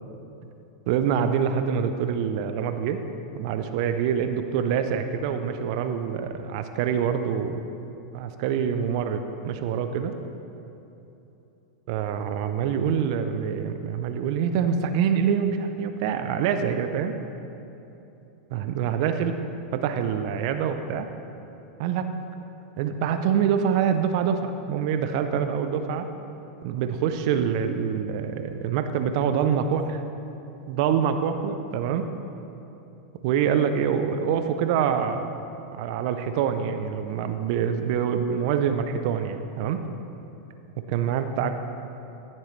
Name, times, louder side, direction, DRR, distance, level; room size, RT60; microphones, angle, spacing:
voice 1, 0.9-3.0 3.3-7.6 8.1-10.1 11.9-17.2 18.5-19.3 19.7-21.1 21.8-22.1 22.8-26.1 26.6-30.0 30.7-32.1 33.2-35.4 35.7-39.8 40.9-41.6, right 7 dB, 55° right, 8 dB, 0.5 m, -25 dB
14.0 x 7.5 x 3.2 m, 3.0 s
hypercardioid pair, 100°, 4 cm